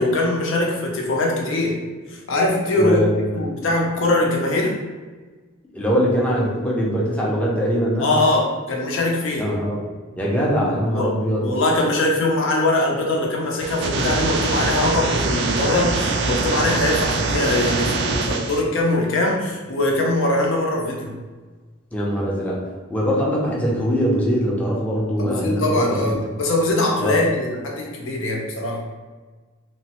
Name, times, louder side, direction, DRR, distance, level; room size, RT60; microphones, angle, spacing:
voice 1, 0.0-1.8 2.1-3.0 3.3-4.7 8.0-9.5 10.9-11.1 11.4-21.1 25.2-28.8, left 2 dB, 70° left, -1 dB, 0.6 m, -22 dB
voice 2, 2.8-3.4 5.7-8.1 9.3-9.8 10.2-11.5 21.9-22.6 22.9-26.2 27.0-27.2, equal, 5° left, -5 dB, 0.5 m, -22 dB
sound 1, 13.6-18.6, right 3 dB, 60° right, 0.3 m, -23 dB
3.0 x 2.1 x 2.9 m, 1.3 s
head